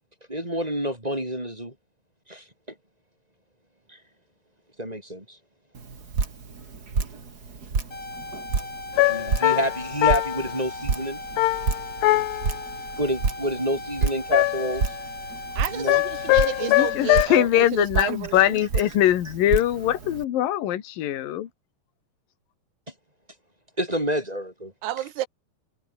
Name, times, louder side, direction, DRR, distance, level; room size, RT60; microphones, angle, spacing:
voice 1, 0.3-1.7 2.3-2.4 3.9-4.0 4.8-5.4 9.1-11.2 13.0-15.0 15.7-16.0 23.8-24.7, equal, 10° right, 4.4 m, -28 dB
Drip, 5.7-20.2, right 5 dB, 30° right, 2.3 m, -31 dB
sound 1, 7.9-16.9, left 2 dB, 25° left, 6.6 m, -38 dB
sound 2, 9.0-10.6 11.4-12.6 14.3-14.8 15.9-17.3, left 18 dB, 90° left, 3.0 m, -22 dB
voice 2, 15.6-18.9 24.8-25.3, right 14 dB, 75° right, 3.4 m, -31 dB
voice 3, 16.6-21.5, left 12 dB, 60° left, 3.3 m, -22 dB
omnidirectional pair, 4.8 m